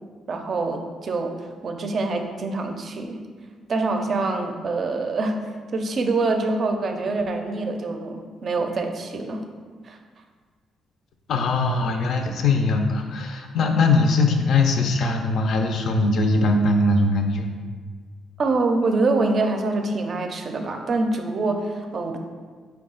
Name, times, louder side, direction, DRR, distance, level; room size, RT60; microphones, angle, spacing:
voice 1, 0.3-1.3 1.6-3.2 3.7-5.4 5.7-9.5 9.8-10.0 18.4-22.2, right 3 dB, 50° right, 5 dB, 0.4 m, -25 dB
voice 2, 11.3-17.5, left 3 dB, 65° left, 4 dB, 0.4 m, -21 dB
4.7 x 2.2 x 3.7 m, 1.6 s
cardioid pair, 90°, 0 cm